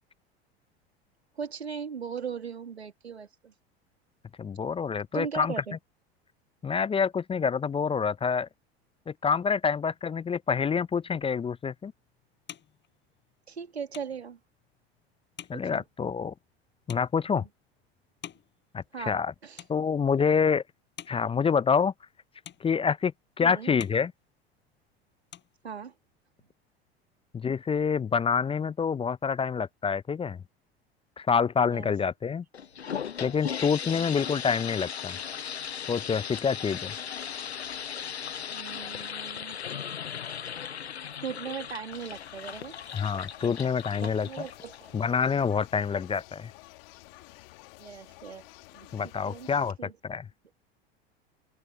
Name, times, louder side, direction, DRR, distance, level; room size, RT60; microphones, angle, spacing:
voice 1, 1.3-3.5 5.1-5.8 13.5-14.4 15.5-15.8 18.9-19.6 23.4-23.7 25.6-25.9 31.7-31.9 33.8-34.1 38.5-39.6 41.2-42.8 43.4-43.5 43.9-45.0 47.8-48.5 48.7-48.9 49.2-49.9, right 6 dB, 85° right, 2.5 m, -39 dB
voice 2, 4.4-5.5 6.6-8.5 9.1-11.9 15.5-16.3 16.9-17.5 18.7-19.3 19.7-20.6 21.1-21.9 22.6-23.1 23.4-24.1 27.3-30.4 31.2-32.4 33.2-35.2 35.9-36.9 42.9-44.3 44.9-46.5 48.9-49.8 50.0-50.3, left 6 dB, 15° left, 0.7 m, -27 dB
sound 1, 11.6-19.3 19.5-20.3 20.7-22.2 22.4-23.3 23.6-24.9 25.1-26.2, left 10 dB, 35° left, 6.1 m, -50 dB
sound 2, 32.5-45.1, left 8 dB, 85° left, 0.9 m, -37 dB
sound 3, 41.9-49.7, left 23 dB, 60° left, 2.0 m, -51 dB
figure-of-eight pair, 80°, 32 cm